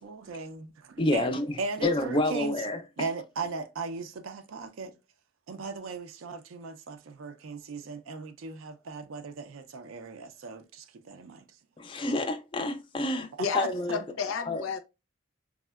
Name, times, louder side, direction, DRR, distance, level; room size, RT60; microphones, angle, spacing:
voice 1, 0.0-1.3 1.6-2.6 3.0-4.9 5.5-11.5 13.4-13.7, right 4 dB, 85° right, 0.4 m, -37 dB
voice 2, 1.0-3.1 11.8-13.3 13.5-14.0 14.4-14.6, left 2 dB, 25° left, 0.3 m, -29 dB
voice 3, 13.4-14.8, left 5 dB, 90° left, 0.5 m, -32 dB
3.4 x 2.1 x 2.2 m
head